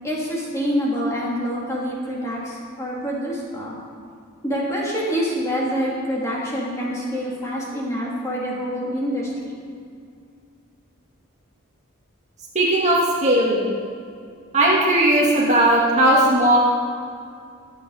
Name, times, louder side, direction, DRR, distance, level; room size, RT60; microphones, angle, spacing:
voice 1, 0.0-3.8 4.4-9.6, equal, 15° left, -5 dB, 3.2 m, -26 dB
voice 2, 12.5-13.8 14.5-16.6, right 1 dB, 30° right, -4 dB, 2.3 m, -17 dB
23.5 x 8.5 x 5.1 m, 2.3 s
head